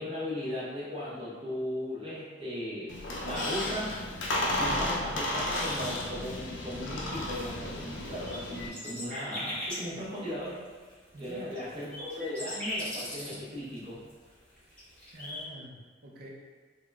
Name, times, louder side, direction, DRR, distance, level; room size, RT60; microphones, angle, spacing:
voice 1, 0.0-4.0 4.4-10.6 11.2-14.0, left 1 dB, 30° right, -8 dB, 0.8 m, -37 dB
Squeak, 2.9-8.7, left 1 dB, 70° left, 0.4 m, -33 dB
sound 1, 7.1-15.4, left 1 dB, 5° left, 0.9 m, -39 dB
voice 2, 11.1-11.5 15.1-16.3, right 1 dB, 50° right, -2 dB, 0.5 m, -46 dB
3.7 x 2.0 x 2.3 m, 1.5 s
head